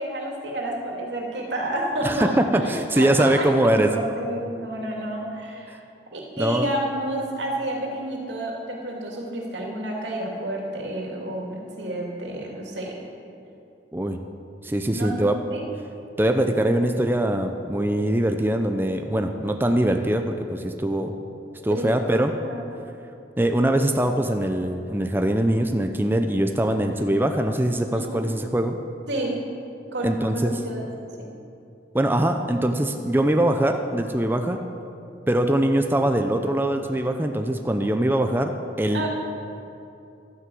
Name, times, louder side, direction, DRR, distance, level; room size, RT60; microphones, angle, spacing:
voice 1, 0.0-3.5 3.8-5.8 6.1-13.0 14.9-15.6 21.7-21.9 22.5-22.6 27.9-28.2 29.1-29.3 29.9-30.9 31.2-31.3 38.9-39.1, right 1 dB, 85° right, -1 dB, 2.7 m, -30 dB
voice 2, 2.0-3.9 5.7-5.8 6.4-6.7 13.9-14.2 14.6-15.4 16.2-21.1 21.6-22.3 23.4-28.8 30.0-30.6 31.9-34.6 35.3-38.5 38.8-39.0, right 1 dB, 10° right, 5 dB, 0.5 m, -22 dB
12.5 x 9.6 x 7.7 m, 2.7 s
head